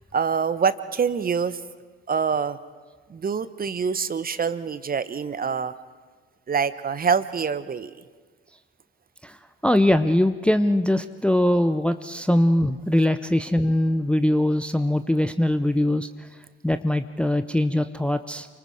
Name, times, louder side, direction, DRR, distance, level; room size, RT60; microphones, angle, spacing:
voice 1, 0.1-1.6 2.1-2.6 3.1-5.7 6.5-7.9, right 6 dB, 25° right, 14 dB, 1.1 m, -25 dB
voice 2, 9.6-16.1 16.6-18.5, left 1 dB, 5° left, 10 dB, 0.8 m, -22 dB
29.0 x 25.0 x 4.9 m, 1.4 s
figure-of-eight pair, 55°, 33 cm